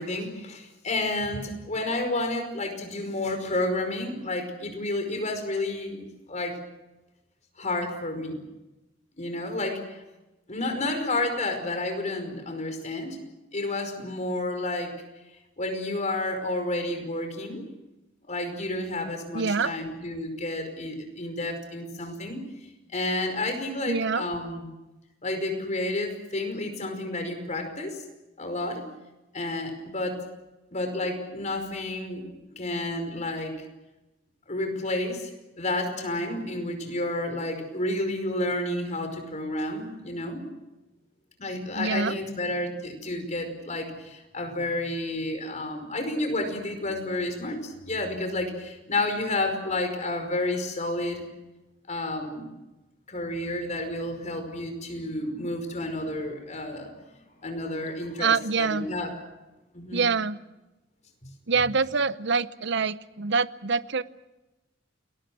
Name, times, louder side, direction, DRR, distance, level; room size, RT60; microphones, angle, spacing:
voice 1, 0.0-6.6 7.6-8.4 9.2-10.0 10.5-13.2 13.5-14.9 15.6-17.6 18.3-22.4 22.9-24.6 25.2-28.0 28.4-28.9 29.3-30.2 30.7-32.3 32.6-33.5 34.5-35.3 35.6-40.4 41.4-51.2 51.9-52.5 53.1-56.9 57.4-59.1 59.7-60.1, left 2 dB, 40° left, 6 dB, 5.2 m, -30 dB
voice 2, 19.3-19.7 23.9-24.3 41.8-42.2 58.2-58.9 59.9-60.4 61.5-64.0, right 5 dB, 65° right, 15 dB, 0.8 m, -25 dB
29.5 x 21.0 x 6.3 m, 1.0 s
head